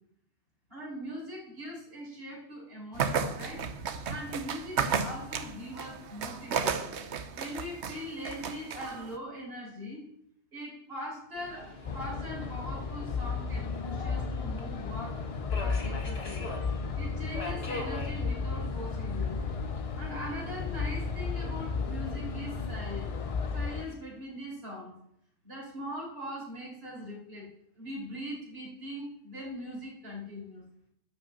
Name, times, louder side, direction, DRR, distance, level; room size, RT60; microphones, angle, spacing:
voice 1, 0.7-3.6 4.1-6.9 7.3-10.1 10.5-15.2 15.6-16.5 17.0-19.4 20.0-23.1 23.5-24.9 25.4-27.5 27.8-30.6, equal, 60° right, -3 dB, 4.8 m, -41 dB
sound 1, 2.9-9.2, right 6 dB, 80° right, 1.1 m, -33 dB
Subway metro underground, 11.3-24.0, left 2 dB, 60° left, 2.0 m, -45 dB
sound 2, 11.8-23.9, left 4 dB, 45° left, 0.5 m, -34 dB
11.0 x 5.2 x 7.2 m, 0.74 s
omnidirectional pair, 1.1 m